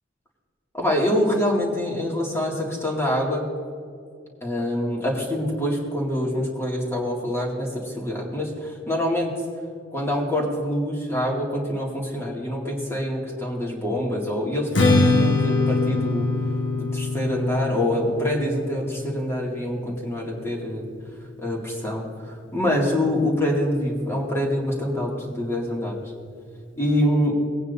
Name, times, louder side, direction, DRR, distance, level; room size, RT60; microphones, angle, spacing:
voice 1, 0.7-3.4 4.4-9.3 9.9-16.3 16.8-20.9 21.4-26.0 26.8-27.4, left 1 dB, 15° left, -2 dB, 2.4 m, -25 dB
Strum, 14.7-21.0, left 3 dB, 70° left, 1.5 m, -24 dB
19.0 x 9.3 x 2.7 m, 2.3 s
head